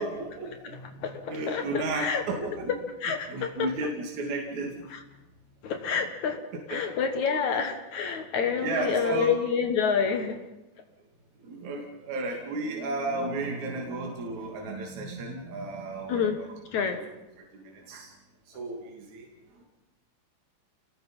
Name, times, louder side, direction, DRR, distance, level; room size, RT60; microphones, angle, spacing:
voice 1, 0.0-2.7 3.3-4.8 6.7-6.8 7.3-7.4 8.6-9.3 11.4-16.3 17.5-18.1 18.6-19.3, right 2 dB, 65° right, 0 dB, 3.9 m, -33 dB
voice 2, 1.5-2.2 3.0-3.7 4.9-5.0 5.6-6.4 6.7-10.4 16.1-16.4 16.7-17.0, left 6 dB, 65° left, 6 dB, 2.7 m, -28 dB
29.5 x 19.5 x 5.5 m, 0.99 s
omnidirectional pair, 3.7 m